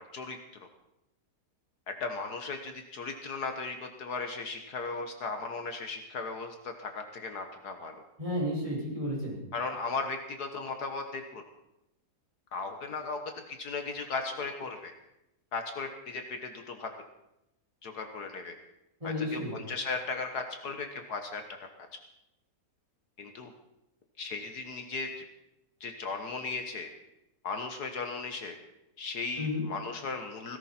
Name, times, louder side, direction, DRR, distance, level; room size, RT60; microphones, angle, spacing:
voice 1, 1.9-8.0 9.5-11.4 12.5-13.2 13.5-14.9 15.5-16.9 17.8-18.6 19.0-21.4 23.2-23.5 24.2-25.2 25.8-26.9 27.4-28.6 29.0-30.6, left 4 dB, 65° left, 5 dB, 1.8 m, -36 dB
voice 2, 8.2-9.4 19.0-19.6 29.4-29.6, left 1 dB, 20° right, -4 dB, 5.9 m, -32 dB
17.5 x 16.0 x 4.4 m, 0.88 s
omnidirectional pair, 1.8 m